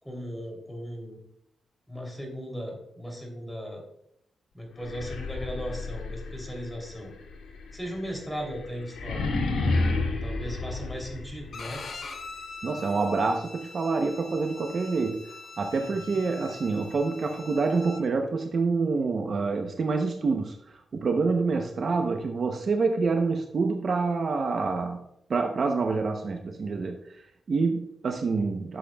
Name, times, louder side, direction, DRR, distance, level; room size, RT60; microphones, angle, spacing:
voice 1, 0.0-1.2 1.9-3.8 4.5-7.1 7.7-9.3 10.2-11.8 15.8-16.2, equal, 5° left, 1 dB, 3.1 m, -37 dB
sound 1, 4.8-11.7, left 3 dB, 80° left, 2.2 m, -31 dB
Bowed string instrument, 11.5-18.0, left 4 dB, 55° left, 1.1 m, -43 dB
voice 2, 12.6-15.2 15.6-25.0 25.3-28.8, right 4 dB, 50° right, 4 dB, 0.8 m, -27 dB
12.5 x 7.3 x 2.3 m, 0.77 s
cardioid pair, 85°, 0 cm